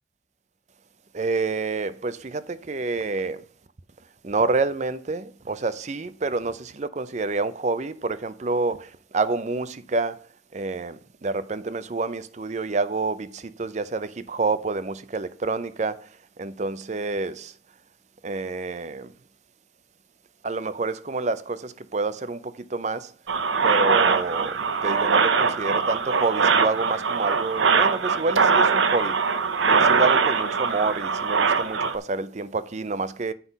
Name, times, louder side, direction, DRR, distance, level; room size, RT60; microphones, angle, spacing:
voice 1, 1.1-3.4 4.2-8.8 9.1-10.1 10.5-11.0 11.2-13.3 13.6-16.0 16.4-17.5 18.2-19.1 20.4-22.4 22.7-23.1 23.6-24.6 24.8-29.1 29.7-33.3, right 3 dB, 40° right, 0.5 m, -28 dB
sound 1, 23.3-31.9, right 5 dB, 85° right, 0.8 m, -22 dB
8.1 x 5.7 x 5.2 m
head